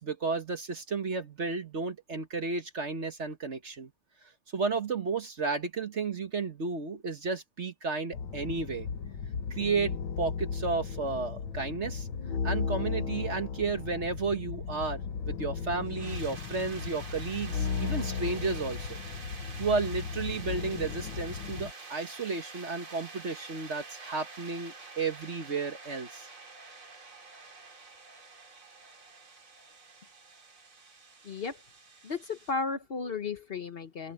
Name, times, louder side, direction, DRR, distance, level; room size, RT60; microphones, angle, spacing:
voice 1, 0.0-3.9 4.5-8.9 9.5-12.1 12.4-19.0 19.6-26.3, right 4 dB, 40° right, 1.3 m, -33 dB
sound 1, 8.1-21.7, left 6 dB, 70° left, 2.0 m, -35 dB
sound 2, 15.8-32.5, right 3 dB, 80° right, 5.1 m, -48 dB
voice 2, 31.2-31.6 32.0-34.1, left 4 dB, 45° left, 0.7 m, -34 dB
open air
omnidirectional pair, 2.3 m